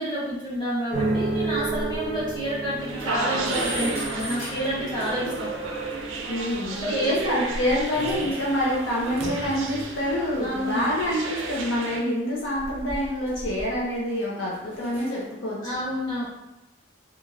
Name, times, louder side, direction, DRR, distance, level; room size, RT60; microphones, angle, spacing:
voice 1, 0.0-5.5 6.7-7.1 10.4-10.9 15.6-16.3, equal, 25° left, -10 dB, 1.3 m, -29 dB
sound 1, 0.9-10.2 10.5-11.0, right 2 dB, 35° right, 0.5 m, -33 dB
sound 2, 2.8-12.0, right 3 dB, 85° right, 0.4 m, -33 dB
sound 3, 3.0-5.4 5.9-6.0 7.8-8.6 8.9-11.5 12.3-14.0 14.4-15.3, equal, 45° left, 1.3 m, -40 dB
voice 2, 6.2-15.6, left 1 dB, 75° left, -5 dB, 0.6 m, -27 dB
2.9 x 2.4 x 2.5 m, 0.94 s
head